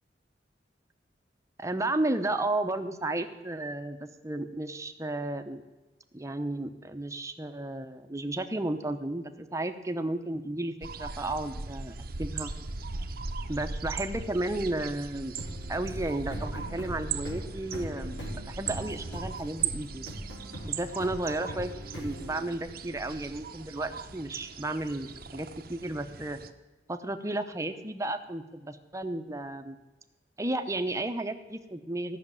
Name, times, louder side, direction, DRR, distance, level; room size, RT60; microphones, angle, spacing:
voice 1, 1.6-5.6 6.1-12.5 13.5-15.3 15.7-20.1 20.6-26.4 26.9-29.8 30.4-32.2, right 2 dB, 15° right, 8 dB, 0.9 m, -33 dB
sound 1, 10.8-26.5, right 5 dB, 55° right, 0.8 m, -39 dB
sound 2, 15.3-23.0, equal, 85° left, 3.9 m, -41 dB
14.5 x 6.7 x 9.7 m, 1.1 s
head